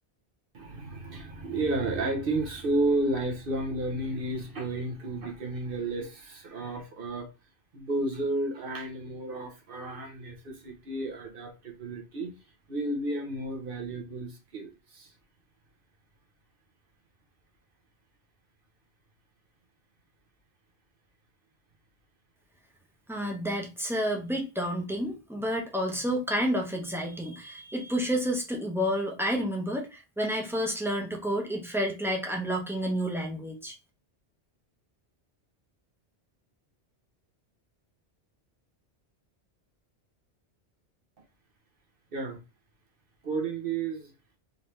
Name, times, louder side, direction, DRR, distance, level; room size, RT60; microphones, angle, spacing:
voice 1, 0.5-7.3 7.7-12.3 12.7-15.1 42.1-42.4 43.2-44.1, right 2 dB, 55° right, 1 dB, 1.1 m, -32 dB
voice 2, 23.1-33.7, equal, ahead, 1 dB, 0.8 m, -30 dB
3.9 x 2.8 x 3.2 m, 0.28 s
omnidirectional pair, 1.1 m